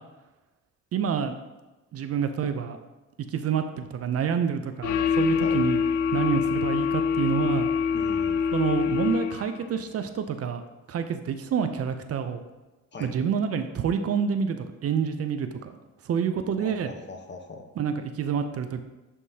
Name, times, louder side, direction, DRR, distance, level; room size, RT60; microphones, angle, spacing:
voice 1, 0.9-1.3 1.9-2.8 3.3-5.8 6.1-7.7 8.5-10.6 10.9-12.4 13.0-15.8 16.1-16.9 17.8-18.8, right 7 dB, 50° right, 8 dB, 0.5 m, -28 dB
sound 1, 4.8-9.7, left 6 dB, 80° left, 0.5 m, -25 dB
voice 2, 7.9-8.4 12.9-13.1 16.6-17.7, left 3 dB, 35° left, 4 dB, 1.0 m, -40 dB
11.0 x 3.7 x 2.8 m, 1.1 s
cardioid pair, 90°, 30 cm